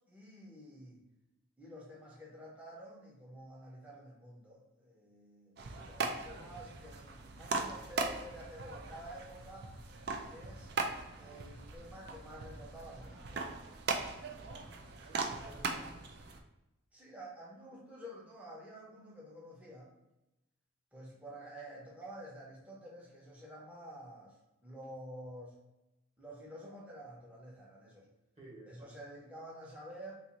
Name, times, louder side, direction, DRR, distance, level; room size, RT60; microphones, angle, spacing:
voice 1, 0.1-1.0 1.6-9.7 10.2-10.7 11.2-13.5 16.9-19.9 20.9-25.5 26.2-28.1 28.7-30.2, right 1 dB, 5° right, -4 dB, 0.7 m, -50 dB
sound 1, 5.6-16.4, right 3 dB, 50° right, 0.4 m, -40 dB
voice 2, 14.5-16.2 28.4-28.9, right 1 dB, 30° right, -5 dB, 1.3 m, -54 dB
4.0 x 2.4 x 2.9 m, 0.96 s
head